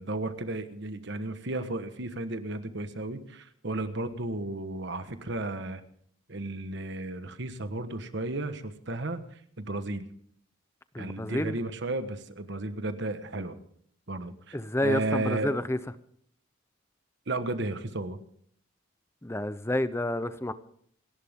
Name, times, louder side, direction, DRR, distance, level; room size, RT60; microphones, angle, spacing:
voice 1, 0.0-5.8 6.3-9.2 9.6-10.1 11.0-13.6 14.1-14.6 14.8-15.5 17.3-18.2, right 2 dB, 55° right, 1.3 m, -33 dB
voice 2, 10.9-11.6 14.5-15.8 19.2-20.5, left 1 dB, 10° left, 0.6 m, -29 dB
28.5 x 11.5 x 3.6 m
head